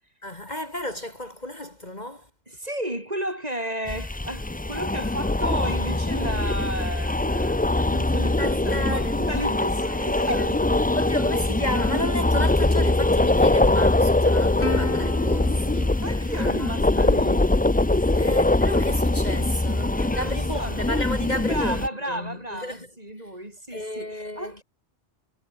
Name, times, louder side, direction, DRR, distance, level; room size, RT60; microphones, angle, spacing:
voice 1, 0.2-2.3 8.2-9.5 9.8-10.6 10.9-16.0 16.3-16.7 18.0-22.9 23.2-23.3 23.7-24.6, left 1 dB, 35° left, 3.3 m, -33 dB
voice 2, 2.5-10.8 16.0-17.4 18.1-18.4 19.9-20.8 21.4-24.6, right 1 dB, 35° right, 7.5 m, -33 dB
sound 1, 3.9-21.9, left 2 dB, 15° left, 0.3 m, -22 dB
Plucked string instrument, 14.6-17.4, left 2 dB, 65° left, 3.7 m, -36 dB
omnidirectional pair, 1.2 m